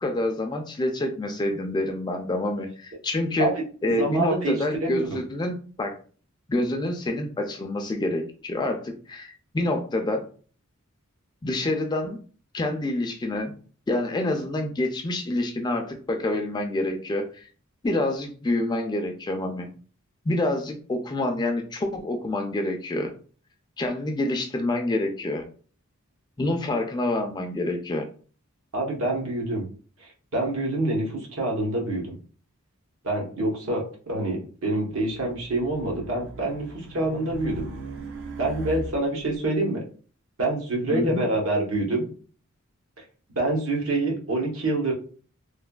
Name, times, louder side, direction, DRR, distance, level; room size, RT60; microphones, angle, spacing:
voice 1, 0.0-3.5 3.8-6.0 6.5-10.3 11.4-12.2 12.5-13.5 13.9-17.5 17.8-19.7 20.3-23.1 23.8-25.4 26.4-28.0 40.9-41.2, left 1 dB, 20° left, 4 dB, 0.3 m, -27 dB
voice 2, 3.9-5.2 28.7-29.6 30.0-32.2 33.0-37.7 38.4-39.8 40.4-42.1 43.3-44.9, right 2 dB, 80° right, -1 dB, 1.0 m, -26 dB
Race car auto racing, 35.0-39.4, right 2 dB, 60° right, 0.4 m, -39 dB
3.2 x 2.2 x 2.2 m, 0.41 s
head